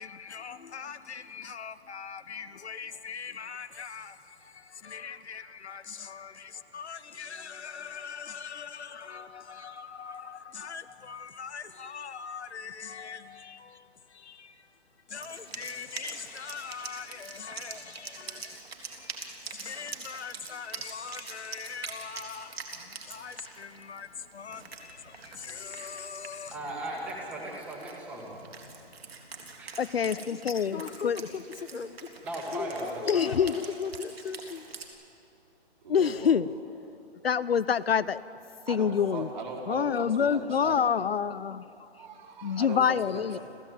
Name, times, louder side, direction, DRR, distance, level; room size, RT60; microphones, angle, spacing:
voice 1, 0.0-14.8 15.1-26.6 27.3-27.5 30.7-34.7, left 6 dB, 90° left, 1.5 m, -41 dB
Wind instrument woodwind instrument, 15.1-34.9, right 4 dB, 65° right, 3.6 m, -45 dB
voice 2, 26.5-28.4 29.6-29.7 32.2-33.4, right 1 dB, 5° right, 1.7 m, -37 dB
voice 3, 29.8-31.2 33.1-33.5 35.9-36.5 37.2-38.2 38.7-39.3 39.7-41.7 42.4-43.4, left 7 dB, 65° left, 0.7 m, -26 dB
voice 4, 35.8-36.4 38.7-40.8 42.0-43.4, right 4 dB, 45° right, 4.5 m, -39 dB
29.0 x 15.5 x 9.2 m
hypercardioid pair, 175°, 32 cm